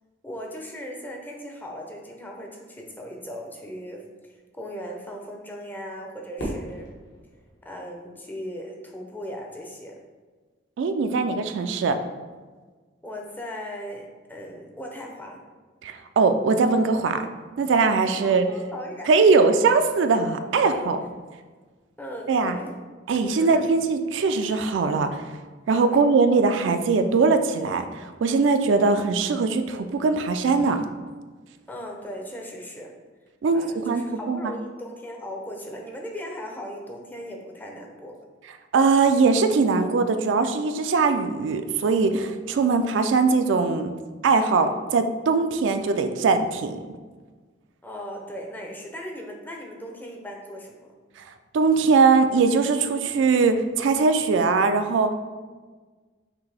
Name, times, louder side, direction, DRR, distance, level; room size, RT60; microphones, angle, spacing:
voice 1, 0.2-6.9 7.6-10.0 13.0-15.4 18.2-19.6 22.0-22.7 23.4-23.6 25.9-26.0 31.7-32.9 33.5-38.2 47.8-50.9, equal, 10° left, 0 dB, 0.5 m, -38 dB
Fireworks, 6.4-8.7, equal, 65° left, 1.2 m, -37 dB
voice 2, 10.8-12.0 15.8-17.2 17.6-18.5 19.1-21.0 22.3-22.6 23.1-25.2 25.7-30.8 33.4-34.0 34.3-34.5 38.7-43.9 44.2-46.8 51.5-55.1, right 4 dB, 70° right, 8 dB, 0.3 m, -21 dB
6.0 x 2.6 x 3.3 m, 1.4 s
head